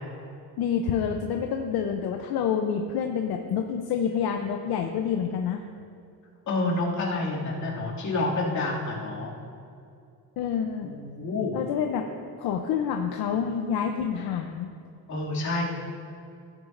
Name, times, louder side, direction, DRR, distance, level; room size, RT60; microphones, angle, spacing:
voice 1, 0.6-5.6 10.4-10.9 11.5-12.0 12.4-14.7, left 7 dB, 75° left, 4 dB, 0.7 m, -28 dB
voice 2, 6.5-9.3 10.8-11.6 15.1-15.6, left 2 dB, 50° left, -6 dB, 2.5 m, -28 dB
15.0 x 9.1 x 2.6 m, 2.5 s
cardioid pair, 150°, 37 cm